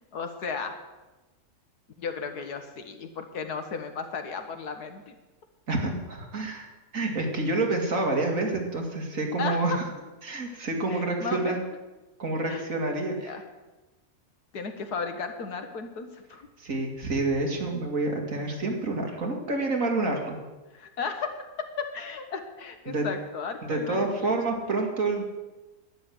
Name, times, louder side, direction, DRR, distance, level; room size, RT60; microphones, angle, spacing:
voice 1, 0.1-0.8 2.0-5.1 9.4-9.8 10.9-11.6 12.5-12.7 13.2-13.4 14.5-16.5 20.7-24.3, left 5 dB, 80° left, 6 dB, 1.9 m, -35 dB
voice 2, 5.7-6.7 6.9-9.7 10.2-11.6 12.2-13.4 16.6-20.4 22.9-23.1 23.7-25.2, right 2 dB, 60° right, 1 dB, 2.6 m, -28 dB
12.0 x 10.0 x 7.8 m, 1.1 s
omnidirectional pair, 1.6 m